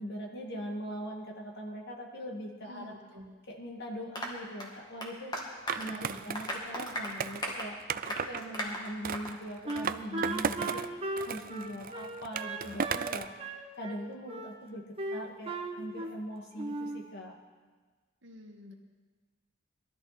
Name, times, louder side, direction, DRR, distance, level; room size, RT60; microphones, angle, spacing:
voice 1, 0.0-2.9 3.5-7.8 8.1-14.8 15.1-17.3, equal, 55° left, 0 dB, 2.4 m, -41 dB
voice 2, 2.7-3.3 6.0-6.3 18.2-18.7, left 1 dB, 65° right, 1 dB, 2.0 m, -49 dB
Applause, 4.2-9.4 9.7-9.8 10.2-10.3 10.6-10.7, equal, 20° left, 2.1 m, -38 dB
Skateboard, 5.7-8.4 9.0-10.9 11.2-13.4, right 6 dB, 45° right, 0.5 m, -35 dB
Wind instrument woodwind instrument, 9.7-13.1 13.4-14.5 15.0-16.3 16.6-17.0, right 2 dB, 30° right, 1.2 m, -37 dB
22.0 x 13.0 x 4.4 m, 1.4 s
head